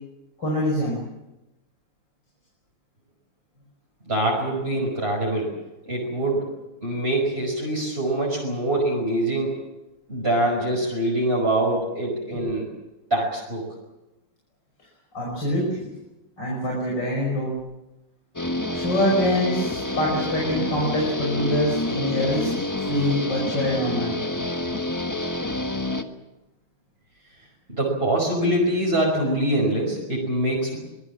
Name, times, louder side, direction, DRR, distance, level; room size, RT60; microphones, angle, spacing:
voice 1, 0.4-1.0 12.3-12.4 15.1-15.9 16.4-17.5 18.7-22.5 22.9-24.2, left 1 dB, 65° left, -2 dB, 6.4 m, -24 dB
voice 2, 4.1-5.5 5.9-6.5 6.8-9.6 10.1-12.7 13.1-13.6 27.8-30.8, right 1 dB, 30° right, -4 dB, 5.7 m, -24 dB
Guitar, 18.4-26.0, left 1 dB, 10° left, 1.1 m, -28 dB
25.0 x 21.5 x 7.4 m, 0.99 s
omnidirectional pair, 2.1 m